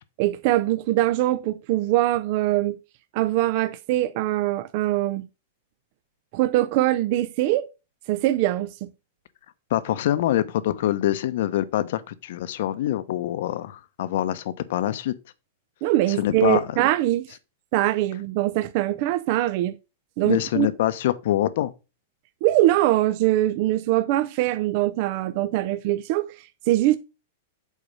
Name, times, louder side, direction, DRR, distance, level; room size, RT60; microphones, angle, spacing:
voice 1, 0.2-2.8 3.1-5.2 6.3-7.7 8.1-8.7 15.8-17.3 17.7-19.8 20.2-20.7 22.4-27.0, right 15 dB, 45° right, 0.5 m, -22 dB
voice 2, 9.7-15.1 16.2-16.8 20.2-21.7, left 13 dB, 60° left, 0.9 m, -25 dB
8.4 x 4.2 x 5.5 m
supercardioid pair, 160°, 0 cm